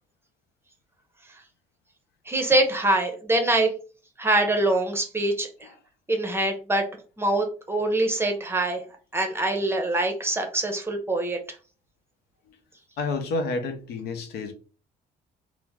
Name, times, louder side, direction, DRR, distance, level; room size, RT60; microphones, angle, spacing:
voice 1, 2.3-3.7 4.2-5.5 6.1-6.9 7.2-8.8 9.1-11.4, right 2 dB, 15° right, 0.6 m, -24 dB
voice 2, 13.0-14.5, left 3 dB, 75° left, 0.7 m, -30 dB
2.9 x 2.0 x 3.4 m
cardioid pair, 110°, 17 cm